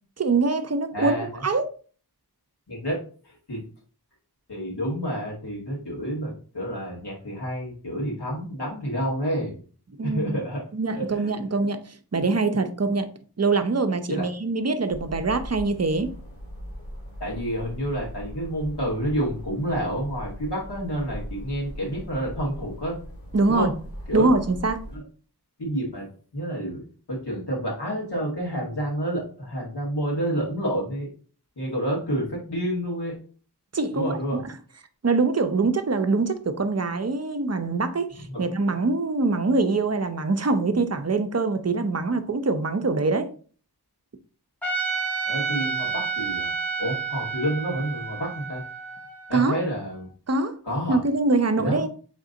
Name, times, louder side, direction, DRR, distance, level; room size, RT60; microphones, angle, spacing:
voice 1, 0.2-1.7 10.0-10.4 10.7-11.8 12.1-13.1 13.4-16.1 23.3-23.7 24.1-24.8 33.7-34.5 35.0-43.3 49.3-49.6 50.3-50.6 50.9-51.9, right 3 dB, 40° right, 0.6 m, -24 dB
voice 2, 0.9-1.4 2.7-2.9 3.5-3.6 4.5-9.6 10.0-10.6 11.0-11.3 14.1-14.3 17.2-23.0 23.5-23.7 24.1-24.3 24.9-25.0 25.6-26.0 26.3-26.8 27.1-31.1 31.6-33.1 33.9-34.4 38.3-38.4 45.3-46.5 46.8-48.6 49.3-50.1 50.6-51.0 51.6-51.8, equal, 85° left, 2.0 m, -29 dB
sound 1, 14.9-25.0, equal, 35° left, 1.3 m, -39 dB
Trumpet, 44.6-49.8, right 5 dB, 5° left, 0.9 m, -30 dB
4.0 x 3.6 x 3.7 m
wide cardioid pair, 50°, 39 cm